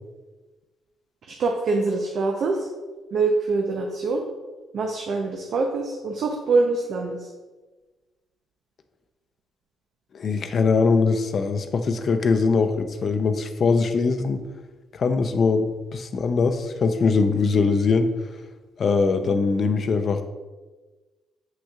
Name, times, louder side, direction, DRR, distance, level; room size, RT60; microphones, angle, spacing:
voice 1, 1.3-2.7 3.1-4.2 4.7-7.3, right 3 dB, 65° right, 1 dB, 0.7 m, -24 dB
voice 2, 10.1-14.4 14.9-18.1 18.8-20.2, left 4 dB, 50° left, 8 dB, 0.6 m, -22 dB
7.5 x 6.2 x 2.4 m, 1.2 s
cardioid pair, 90°, 0 cm